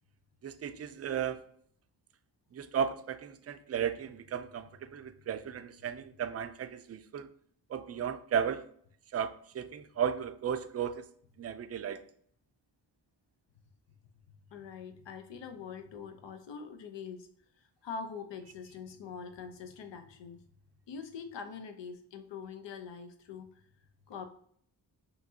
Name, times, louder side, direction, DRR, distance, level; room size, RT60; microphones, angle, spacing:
voice 1, 0.4-1.4 2.5-7.3 7.7-8.7 9.1-11.1 11.4-12.0, right 8 dB, 35° right, 0.4 m, -35 dB
voice 2, 14.3-17.3 17.8-20.4 20.9-23.6 24.1-24.3, left 5 dB, 85° left, 0.8 m, -44 dB
5.8 x 3.0 x 2.8 m
wide cardioid pair, 105°, 42 cm